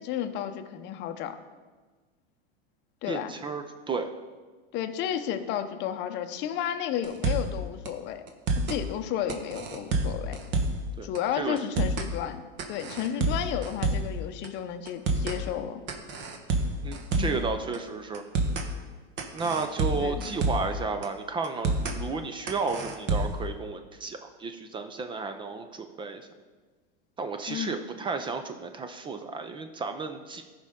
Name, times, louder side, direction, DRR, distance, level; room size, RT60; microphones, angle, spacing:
voice 1, 0.0-1.4 3.0-3.3 4.7-8.2 8.7-10.4 11.0-12.4 12.7-15.8 17.1-17.4 19.9-20.3 27.5-27.8, left 10 dB, 35° left, 7 dB, 0.7 m, -32 dB
voice 2, 3.1-4.1 11.0-11.1 11.4-11.6 16.8-18.2 19.3-26.3 27.2-30.4, right 4 dB, 15° right, 7 dB, 0.4 m, -33 dB
sound 1, 7.0-7.6 7.9-8.0 8.3-8.8 9.3-10.9 11.1-11.2 11.6-12.1 12.6-14.2 14.4-14.5 14.9-15.4 15.9-17.4 17.7-17.8 18.1-18.7 19.2-20.7 21.0-21.1 21.4-22.0 22.5-23.4, right 2 dB, 35° right, 1.2 m, -28 dB
14.0 x 5.2 x 3.6 m, 1.4 s
hypercardioid pair, 120°, 31 cm